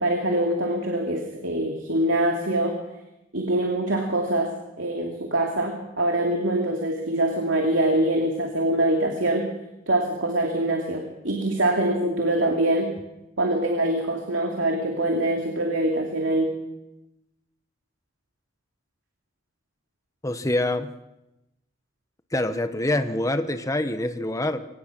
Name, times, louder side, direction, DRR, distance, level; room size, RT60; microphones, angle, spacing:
voice 1, 0.0-2.8 3.3-9.5 9.9-13.0 13.4-16.5, right 1 dB, 80° right, 2 dB, 2.7 m, -24 dB
voice 2, 20.2-20.9 22.3-24.7, left 1 dB, 15° left, 9 dB, 1.0 m, -25 dB
24.0 x 18.5 x 6.1 m, 0.92 s
head